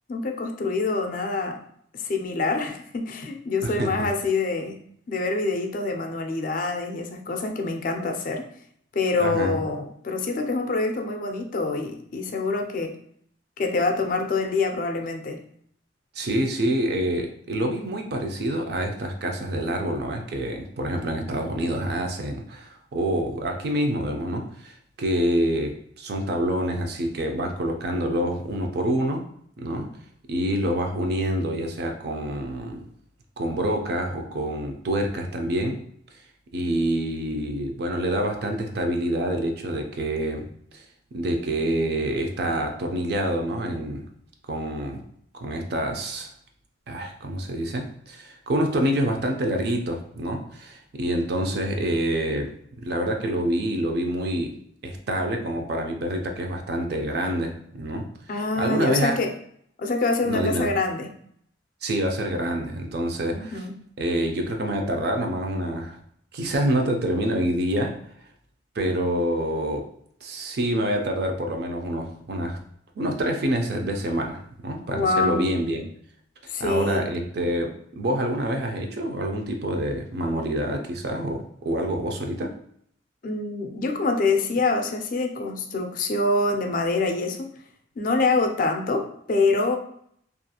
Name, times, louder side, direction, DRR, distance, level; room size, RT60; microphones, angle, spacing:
voice 1, 0.1-1.6 1.9-4.8 5.1-8.4 8.9-12.9 13.6-15.4 58.3-59.3 59.8-61.1 63.3-63.7 74.9-75.5 76.5-77.1 83.2-87.5 88.0-89.8, left 3 dB, 45° left, 4 dB, 0.3 m, -25 dB
voice 2, 3.6-3.9 9.2-9.6 16.1-29.2 29.6-29.9 30.3-32.8 33.4-35.8 36.5-40.5 40.7-40.8 41.1-44.1 44.5-45.0 45.3-46.3 46.9-54.5 54.8-58.1 58.6-59.1 60.2-60.7 61.8-63.6 64.0-66.0 66.3-68.0 68.7-69.8 70.2-72.6 73.0-75.8 76.6-82.5, right 1 dB, 60° right, 3 dB, 0.4 m, -27 dB
2.4 x 2.3 x 2.7 m, 0.67 s
head